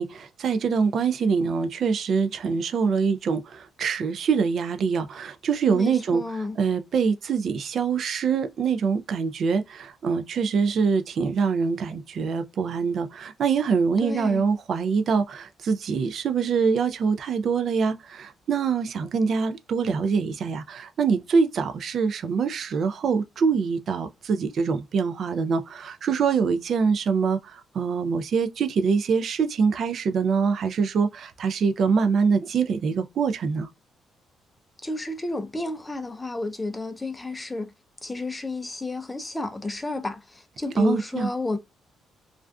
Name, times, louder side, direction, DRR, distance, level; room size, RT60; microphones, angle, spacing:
voice 1, 0.0-6.2 6.6-33.7 40.8-41.3, right 5 dB, 60° right, 0.4 m, -24 dB
voice 2, 5.7-6.6 14.0-14.4 34.8-37.7 38.0-41.6, left 2 dB, 20° left, 0.4 m, -31 dB
2.4 x 2.3 x 2.3 m
cardioid pair, 90°, 0 cm